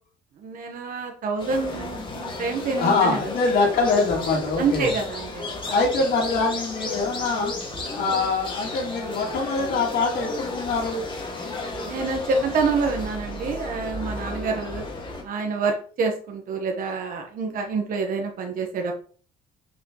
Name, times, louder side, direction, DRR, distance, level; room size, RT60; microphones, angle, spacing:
voice 1, 0.4-3.2 4.6-5.5 11.8-14.8 15.2-18.9, right 4 dB, 55° right, 2 dB, 1.2 m, -27 dB
sound 1, 1.4-15.2, left 2 dB, 30° left, 2.0 m, -33 dB
voice 2, 2.8-4.9 5.7-7.5 7.9-11.0, left 3 dB, 65° left, -4 dB, 2.8 m, -23 dB
6.0 x 5.7 x 3.1 m, 0.42 s
cardioid pair, 110°, 17 cm